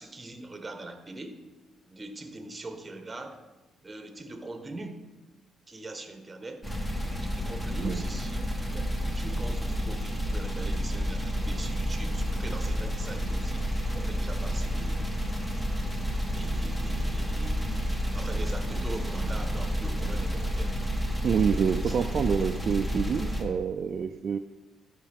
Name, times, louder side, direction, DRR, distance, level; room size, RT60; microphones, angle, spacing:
voice 1, 0.0-1.4 1.9-3.4 3.8-5.0 5.7-6.6 7.0-15.1 16.2-20.8 21.8-22.1, right 2 dB, 20° right, 6 dB, 1.1 m, -42 dB
sound 1, 6.6-23.4, equal, 10° left, 1.2 m, -30 dB
voice 2, 21.2-24.4, right 7 dB, 55° right, 7 dB, 0.3 m, -27 dB
12.0 x 4.8 x 3.5 m, 1.1 s
cardioid pair, 90°, 0 cm